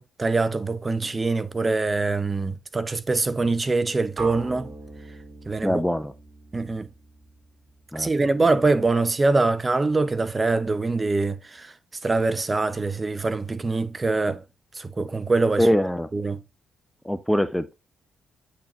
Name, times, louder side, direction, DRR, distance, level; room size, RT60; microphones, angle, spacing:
voice 1, 0.0-4.7 5.5-5.8 6.5-6.9 7.9-11.7 12.0-14.4 14.7-15.7 16.1-16.4, right 3 dB, 30° right, 0.8 m, -24 dB
sound 1, 4.2-8.1, right 3 dB, 50° right, 2.4 m, -40 dB
voice 2, 5.6-6.1 7.9-8.1 15.6-16.1 17.0-17.7, equal, 5° left, 0.5 m, -23 dB
8.4 x 3.9 x 3.1 m
hypercardioid pair, 45°, 0 cm